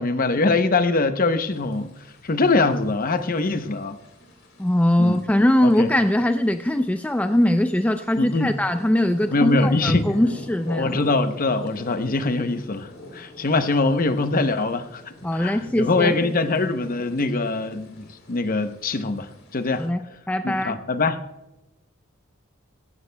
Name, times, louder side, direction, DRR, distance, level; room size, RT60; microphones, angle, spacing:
voice 1, 0.0-1.9 2.2-4.0 5.0-5.2 5.6-5.9 8.2-8.6 9.3-10.0 10.7-15.0 15.3-19.8 20.4-21.2, left 3 dB, 45° left, 0.7 m, -23 dB
sound 1, 1.5-19.9, equal, 85° left, 3.3 m, -44 dB
voice 2, 4.6-10.9 15.2-16.2 19.8-20.0 20.3-20.8, left 1 dB, 5° left, 0.4 m, -21 dB
18.0 x 16.0 x 2.2 m
head